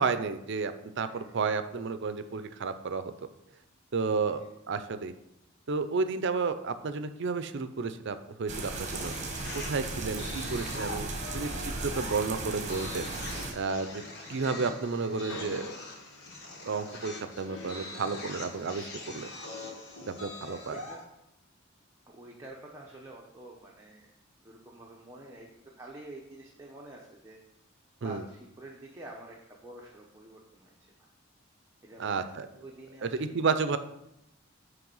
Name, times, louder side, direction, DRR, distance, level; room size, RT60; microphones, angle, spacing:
voice 1, 0.0-3.3 3.9-4.4 4.7-5.1 5.7-9.1 9.5-11.1 11.3-13.1 13.5-14.0 14.3-15.7 16.7-19.3 20.1-20.7 28.0-28.2 32.0-32.5 33.0-33.8, right 4 dB, 60° right, 11 dB, 0.5 m, -32 dB
voice 2, 1.1-1.4 14.2-14.5 20.4-21.0 22.1-24.1 24.4-27.4 28.0-31.1 31.8-33.3, right 1 dB, 15° right, -2 dB, 0.9 m, -48 dB
sound 1, 8.5-13.5, right 3 dB, 35° right, 1.1 m, -36 dB
sound 2, 8.7-21.1, left 2 dB, 55° left, 1.5 m, -43 dB
Train, 14.7-19.9, left 1 dB, 75° left, 1.0 m, -49 dB
9.4 x 3.4 x 5.4 m, 0.84 s
head